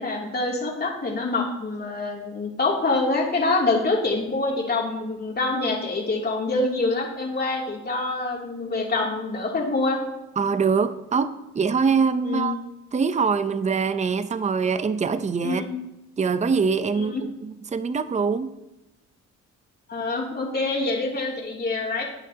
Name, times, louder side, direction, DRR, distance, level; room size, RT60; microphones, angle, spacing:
voice 1, 0.0-10.0 12.2-12.5 15.4-15.7 16.9-17.2 19.9-22.0, left 3 dB, 35° left, -1 dB, 2.8 m, -25 dB
voice 2, 10.4-12.6 12.9-15.6 16.2-17.1 17.4-18.5, right 5 dB, 25° right, 12 dB, 0.6 m, -23 dB
13.0 x 9.1 x 2.8 m, 0.95 s
cardioid pair, 90°, 30 cm